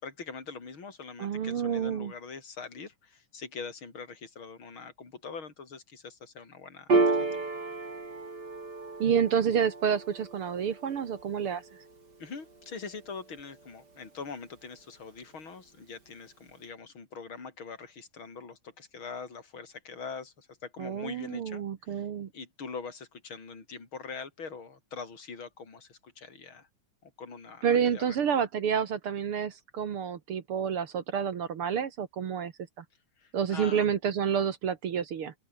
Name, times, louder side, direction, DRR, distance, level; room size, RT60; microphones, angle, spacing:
voice 1, 0.0-7.4 12.2-22.1 22.3-26.7 27.0-28.2 33.2-33.9, left 5 dB, 35° left, 5.3 m, -43 dB
voice 2, 1.2-2.1 9.0-11.6 20.8-22.3 27.6-32.8 33.3-35.3, right 7 dB, 50° right, 1.9 m, -29 dB
Piano, 6.9-13.8, right 3 dB, 30° right, 4.8 m, -32 dB
open air
omnidirectional pair, 3.8 m